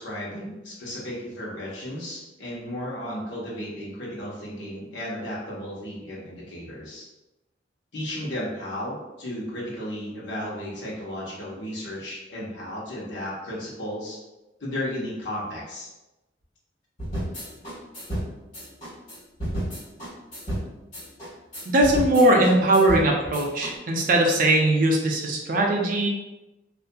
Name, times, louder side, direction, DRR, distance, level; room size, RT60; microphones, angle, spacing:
voice 1, 0.0-7.1 7.9-14.2 14.6-15.9, left 1 dB, 75° left, -5 dB, 0.9 m, -34 dB
sound 1, 17.0-23.7, equal, 45° left, 1.4 m, -32 dB
voice 2, 21.7-26.1, right 1 dB, 45° right, 0 dB, 0.4 m, -20 dB
2.7 x 2.4 x 2.2 m, 1.0 s
head